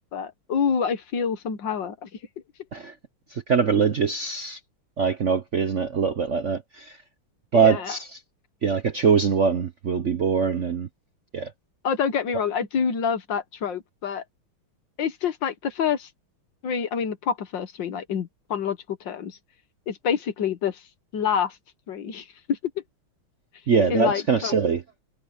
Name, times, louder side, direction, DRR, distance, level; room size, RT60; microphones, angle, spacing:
voice 1, 0.1-2.1 7.5-8.0 11.8-14.2 15.0-16.1 16.6-19.4 19.9-20.8 21.1-21.6 21.9-22.8 23.9-24.6, left 7 dB, 60° left, 1.9 m, -27 dB
voice 2, 3.5-4.6 5.0-6.9 7.5-8.0 8.6-10.9 11.3-11.5 23.7-24.8, right 6 dB, 50° right, 0.9 m, -22 dB
omnidirectional pair, 2.3 m